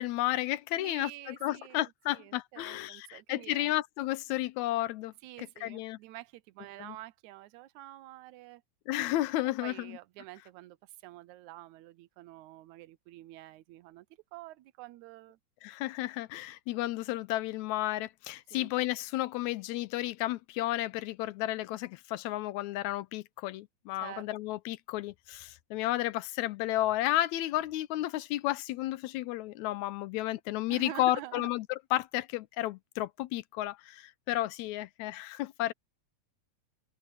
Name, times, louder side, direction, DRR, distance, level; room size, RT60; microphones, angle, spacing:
voice 1, 0.0-6.0 6.8-7.0 8.9-10.0 15.6-35.7, left 15 dB, 80° left, 1.9 m, -32 dB
voice 2, 0.8-3.8 5.2-8.6 9.6-14.1 14.3-15.4 18.5-18.7 24.0-24.3 30.7-31.5, right 15 dB, 80° right, 2.0 m, -47 dB
open air
omnidirectional pair, 3.4 m